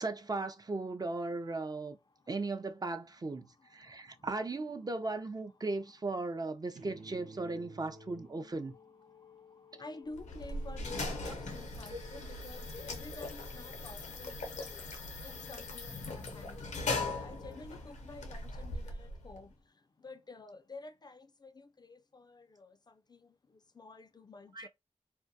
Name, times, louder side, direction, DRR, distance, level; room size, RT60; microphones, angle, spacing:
voice 1, 0.0-2.0 2.3-8.7 11.9-12.0 24.5-24.7, right 3 dB, 35° right, 0.5 m, -37 dB
sound 1, 6.7-14.7, left 1 dB, 65° right, 0.7 m, -55 dB
voice 2, 9.8-14.8 15.2-19.5 20.0-23.2 23.8-24.7, left 3 dB, 35° left, 0.3 m, -50 dB
sound 2, 10.1-19.4, left 2 dB, 90° left, 0.6 m, -40 dB
2.2 x 2.2 x 2.6 m
cardioid pair, 40°, 12 cm